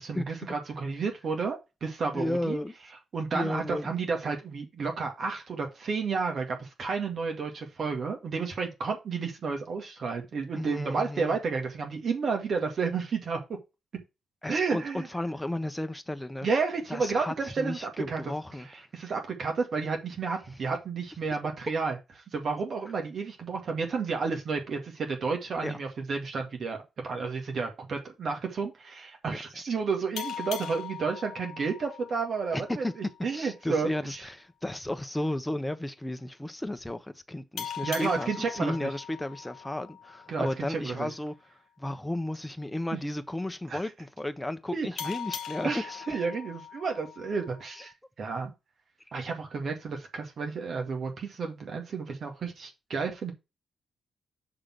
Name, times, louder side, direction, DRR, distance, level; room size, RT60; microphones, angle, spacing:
voice 1, 0.0-2.6 3.1-13.4 14.5-15.1 16.4-18.2 18.6-22.0 22.3-34.2 37.8-38.9 40.3-41.1 42.9-43.0 43.7-43.8 44.7-44.9 45.6-47.9 48.2-48.5 49.1-53.3, right 5 dB, 60° right, 2.0 m, -31 dB
voice 2, 2.1-2.7 3.3-3.9 10.5-11.4 14.4-16.5 16.9-18.7 25.6-25.8 29.3-29.4 32.5-32.9 33.3-41.3 41.8-46.0 47.8-47.9, left 1 dB, 10° left, 1.1 m, -34 dB
sound 1, 30.2-33.4 37.6-40.8 45.0-47.9, left 8 dB, 80° left, 1.0 m, -41 dB
6.7 x 3.6 x 6.1 m
supercardioid pair, 50°, 0 cm